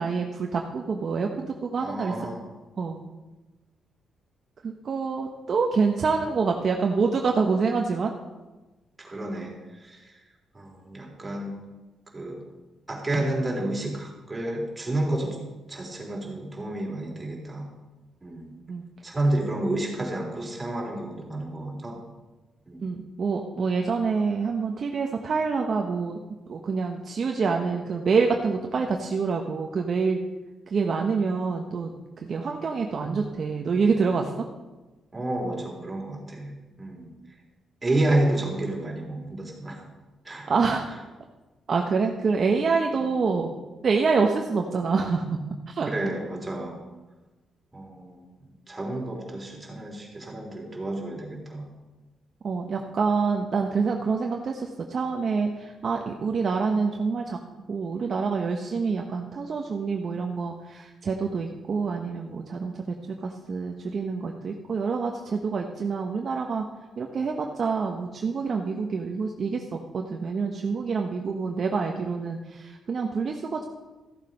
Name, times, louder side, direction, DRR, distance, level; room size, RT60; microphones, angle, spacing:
voice 1, 0.0-2.1 2.8-3.0 4.6-8.1 18.7-18.8 22.8-26.2 26.5-30.2 30.7-31.9 32.2-34.5 40.5-40.9 41.7-43.5 43.8-45.4 45.7-45.9 52.4-57.4 57.7-63.0 63.2-66.6 67.0-73.6, right 4 dB, 50° right, 2 dB, 1.0 m, -26 dB
voice 2, 1.8-2.5 9.0-10.2 10.5-11.6 12.1-12.5 12.9-15.4 15.7-17.7 18.2-18.5 19.0-22.0 22.7-22.8 35.1-36.5 36.8-37.4 37.8-39.8 40.2-40.5 43.0-43.2 45.9-46.8 47.7-51.7, right 1 dB, 20° right, -1 dB, 3.5 m, -30 dB
14.5 x 7.4 x 5.3 m, 1.2 s
cardioid pair, 100°, 0 cm